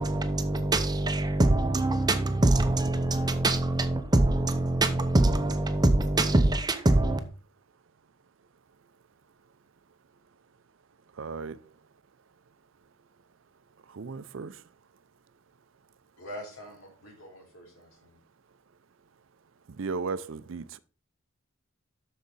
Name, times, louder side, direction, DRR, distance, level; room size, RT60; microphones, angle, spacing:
voice 1, 0.0-7.2, right 2 dB, 20° right, 0.7 m, -24 dB
voice 2, 11.2-11.6 13.9-14.6 19.8-20.8, right 4 dB, 65° right, 0.5 m, -35 dB
voice 3, 16.2-18.2, equal, 80° left, 3.4 m, -44 dB
8.2 x 6.4 x 4.1 m
head